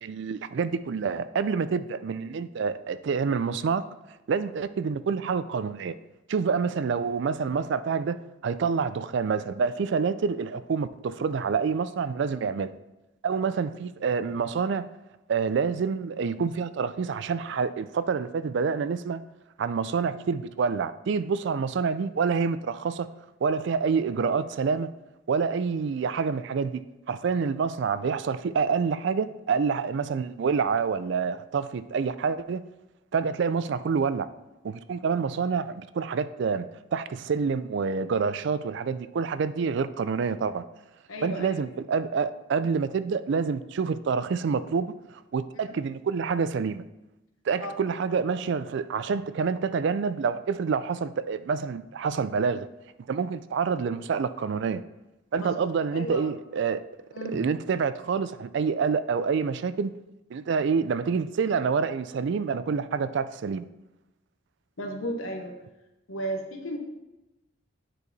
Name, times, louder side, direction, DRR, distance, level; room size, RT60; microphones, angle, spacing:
voice 1, 0.0-3.8 4.3-5.9 6.3-12.7 13.2-14.9 15.3-19.2 19.6-23.1 23.4-24.9 25.3-26.8 27.1-32.6 33.1-34.3 34.6-40.6 41.2-46.8 47.5-52.7 53.1-54.8 55.3-56.8 57.3-59.9 60.3-63.7, right 5 dB, 60° right, 14 dB, 0.3 m, -27 dB
voice 2, 41.1-41.6 45.7-45.8 47.6-47.7 55.4-55.6 55.9-56.2 57.1-57.4 64.8-65.6 66.1-66.8, right 1 dB, 90° left, 4 dB, 1.2 m, -34 dB
9.7 x 4.7 x 4.0 m, 0.99 s
head